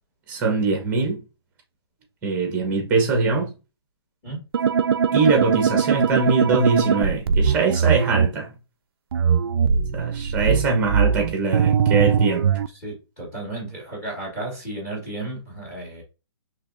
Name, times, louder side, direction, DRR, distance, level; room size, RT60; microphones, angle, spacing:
voice 1, 0.3-1.2 2.2-3.5 5.1-8.5 9.9-12.5, right 4 dB, 10° right, 0.9 m, -22 dB
sound 1, 4.5-8.3 9.1-12.7, right 7 dB, 60° right, 0.4 m, -20 dB
voice 2, 12.7-16.0, right 2 dB, 15° left, 1.6 m, -33 dB
6.4 x 3.2 x 2.5 m
hypercardioid pair, 170°, 14 cm